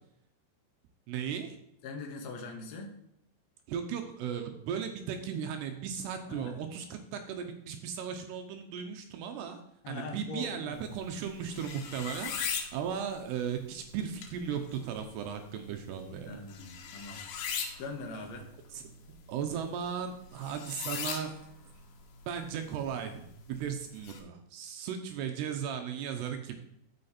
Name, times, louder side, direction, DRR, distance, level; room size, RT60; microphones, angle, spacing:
voice 1, 1.1-1.6 3.7-9.6 9.9-16.5 18.7-18.9 19.3-21.4 22.3-26.5, right 7 dB, 75° right, 6 dB, 2.6 m, -36 dB
voice 2, 1.8-2.9 6.3-6.5 9.8-10.9 16.3-17.2 17.8-18.5, left 3 dB, 65° left, 2 dB, 1.8 m, -41 dB
sound 1, 10.7-24.2, left 6 dB, 90° left, 3.8 m, -42 dB
13.0 x 5.8 x 4.3 m, 0.78 s
omnidirectional pair, 5.4 m